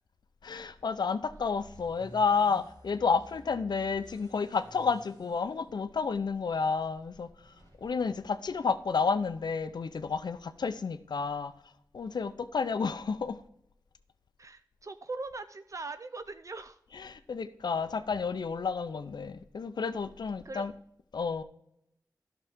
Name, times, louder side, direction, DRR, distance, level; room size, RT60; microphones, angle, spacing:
voice 1, 0.4-7.5 7.8-11.5 11.9-13.4 17.0-20.7 21.1-21.4, left 5 dB, 80° left, 12 dB, 0.6 m, -31 dB
sound 1, 1.3-9.2, equal, 80° right, 3.7 m, -55 dB
voice 2, 14.4-16.8 20.4-20.6, right 3 dB, 50° right, 9 dB, 0.4 m, -40 dB
12.0 x 6.1 x 3.6 m, 0.76 s
cardioid pair, 45°, 7 cm